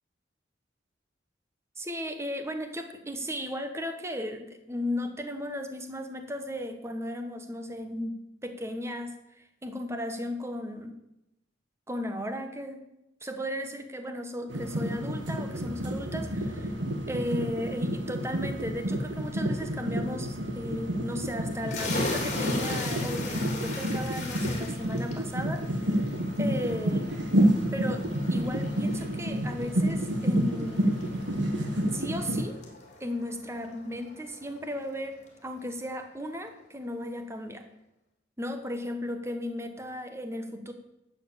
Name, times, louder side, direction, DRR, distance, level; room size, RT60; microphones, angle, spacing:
voice 1, 1.8-8.1 8.4-10.9 11.9-12.8 13.2-16.7 17.1-25.6 26.4-27.1 27.7-30.8 31.9-32.6 33.0-37.6 38.4-40.7, equal, 15° right, 6 dB, 1.2 m, -35 dB
sound 1, 14.5-32.4, equal, 75° right, 1.3 m, -29 dB
sound 2, 21.6-35.0, left 2 dB, 40° left, 3.0 m, -39 dB
11.5 x 7.6 x 7.0 m, 0.88 s
head